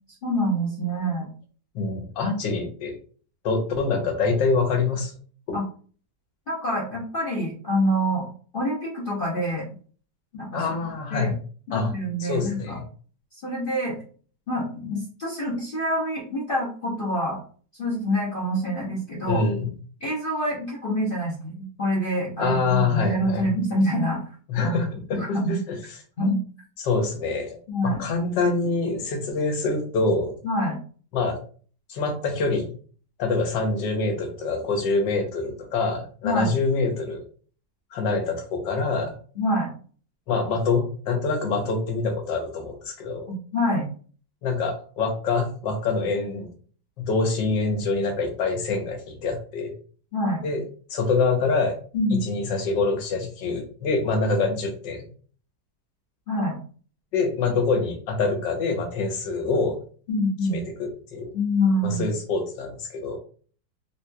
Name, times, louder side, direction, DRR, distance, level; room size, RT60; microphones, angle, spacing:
voice 1, 0.2-1.3 5.5-5.6 6.5-8.3 8.5-9.6 10.3-10.7 11.1-11.3 11.7-12.8 13.3-14.0 14.5-17.4 17.8-19.4 20.0-24.2 24.6-24.7 25.1-25.6 26.2-26.4 27.7-28.0 30.4-30.8 36.2-36.5 39.4-39.7 43.3-43.9 50.1-50.4 51.9-52.3 56.3-56.6 60.1-60.6 61.3-62.0, equal, 50° left, -4 dB, 0.6 m, -26 dB
voice 2, 1.7-2.9 3.4-5.1 5.5-5.6 10.5-11.3 11.7-11.9 12.2-12.8 19.3-19.7 22.4-23.6 24.5-25.2 25.5-26.0 26.8-27.6 27.8-30.3 31.1-31.4 31.9-32.7 33.2-37.2 37.9-39.2 40.3-43.3 44.4-46.5 47.0-49.7 50.4-50.6 50.9-51.8 52.2-55.1 57.1-59.8 60.5-61.3 61.8-63.2, left 3 dB, 85° left, 4 dB, 1.5 m, -25 dB
3.4 x 2.8 x 2.2 m, 0.42 s
omnidirectional pair, 1.9 m